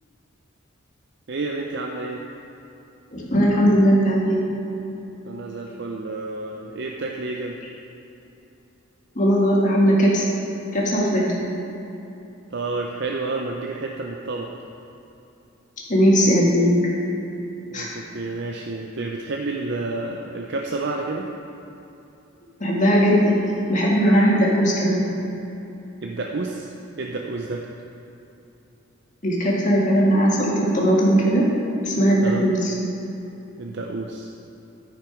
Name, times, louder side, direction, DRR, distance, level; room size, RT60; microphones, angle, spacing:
voice 1, 1.3-2.2 5.2-7.6 12.5-14.5 17.7-21.3 26.0-26.7 27.0-27.6 32.2-32.5 33.6-34.3, right 3 dB, 55° right, 0 dB, 0.6 m, -30 dB
voice 2, 3.1-4.4 9.2-10.3 10.7-11.3 15.9-16.7 17.7-17.9 22.6-23.3 23.7-25.0 29.2-31.4 31.8-32.7, equal, 35° left, -4 dB, 1.8 m, -18 dB
13.5 x 5.9 x 4.9 m, 3.0 s
head